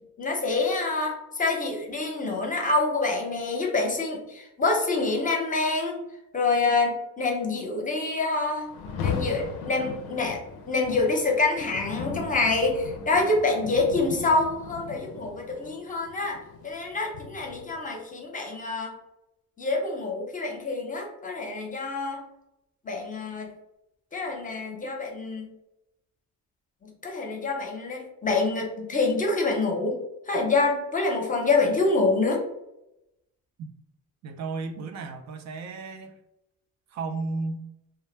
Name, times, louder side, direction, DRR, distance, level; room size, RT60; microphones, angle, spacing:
voice 1, 0.2-6.0 6.3-8.7 9.0-10.4 10.7-16.4 16.6-18.9 19.6-22.2 22.8-23.5 24.1-25.5 26.8-30.0 30.3-32.4, left 3 dB, 20° left, 1 dB, 0.7 m, -26 dB
Rain, 8.7-17.8, left 6 dB, 80° left, 0.5 m, -37 dB
voice 2, 34.2-36.2 36.9-37.7, right 3 dB, 50° right, 7 dB, 0.4 m, -33 dB
2.2 x 2.1 x 3.2 m, 0.88 s
cardioid pair, 85°, 37 cm